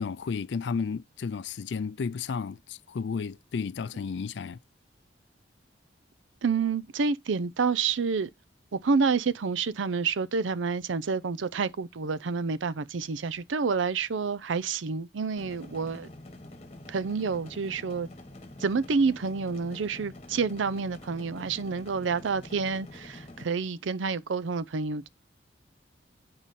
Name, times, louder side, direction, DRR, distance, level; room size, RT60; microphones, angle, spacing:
voice 1, 0.0-4.6, left 5 dB, 70° left, 0.4 m, -32 dB
voice 2, 6.4-8.3 8.7-16.1 16.9-18.1 18.6-25.1, right 5 dB, 90° right, 0.5 m, -28 dB
sound 1, 15.4-23.4, left 1 dB, 35° left, 1.2 m, -47 dB
8.9 x 4.8 x 4.2 m
head